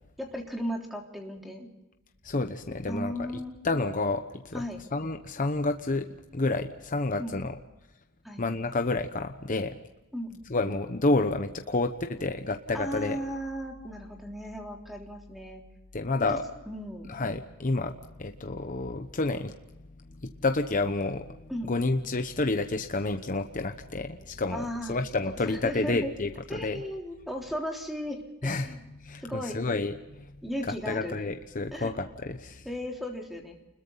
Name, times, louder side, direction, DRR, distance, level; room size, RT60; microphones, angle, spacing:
voice 1, 0.2-1.7 2.9-3.5 4.5-4.8 7.2-7.4 8.2-8.4 10.1-10.4 12.7-15.6 16.3-16.4 16.7-17.1 21.5-21.7 24.5-25.0 25.5-26.1 26.5-28.9 29.2-29.6 30.4-31.2 31.7-31.9 32.7-33.6, equal, ahead, 1 dB, 3.5 m, -36 dB
voice 2, 2.2-4.6 4.9-6.1 6.3-7.5 8.4-9.8 10.5-13.2 15.9-16.4 17.1-19.5 20.2-26.8 28.4-30.3 30.7-32.7, left 2 dB, 40° left, 6 dB, 1.0 m, -30 dB
29.5 x 21.5 x 4.0 m, 0.99 s
head